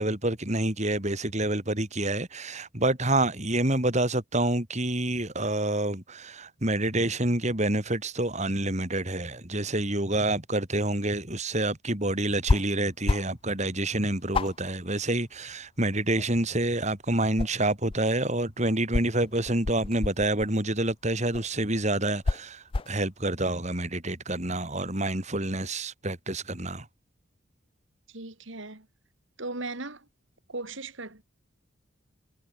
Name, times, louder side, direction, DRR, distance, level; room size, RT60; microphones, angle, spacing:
voice 1, 0.0-26.9, right 1 dB, 30° right, 3.4 m, -28 dB
sound 1, 12.5-12.7 13.0-13.4 13.8-13.9 14.3-15.7 16.0-16.8 17.2-18.1 18.9-20.5 21.3-21.5 22.2-23.0, left 3 dB, 25° left, 0.4 m, -29 dB
voice 2, 28.1-28.9 29.4-30.1 30.5-31.2, right 2 dB, 60° right, 2.8 m, -37 dB
head